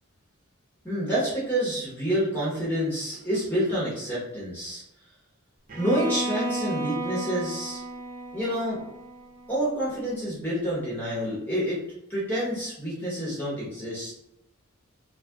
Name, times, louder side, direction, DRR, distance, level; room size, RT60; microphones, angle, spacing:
voice 1, 0.8-4.8 5.8-7.8 8.3-8.8 9.5-11.8 12.1-14.1, equal, 10° left, -8 dB, 1.1 m, -28 dB
Bowed string instrument, 5.7-9.7, right 1 dB, 40° right, 0.6 m, -34 dB
3.5 x 2.4 x 3.5 m, 0.82 s
head